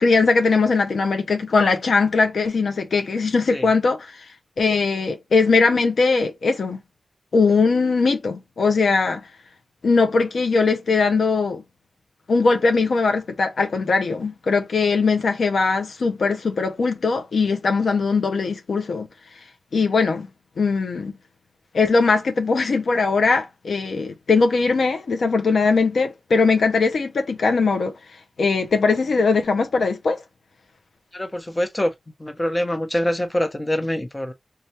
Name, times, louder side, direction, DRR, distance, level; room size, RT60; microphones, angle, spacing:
voice 1, 0.0-4.3 4.6-6.8 7.3-9.2 9.8-11.6 12.3-19.1 19.7-20.3 20.6-21.1 21.7-27.9 28.4-30.2, left 4 dB, 80° left, 0.5 m, -20 dB
voice 2, 31.1-31.9 32.2-34.3, equal, 20° left, 0.7 m, -24 dB
3.2 x 2.3 x 2.7 m
cardioid pair, 60°, 0 cm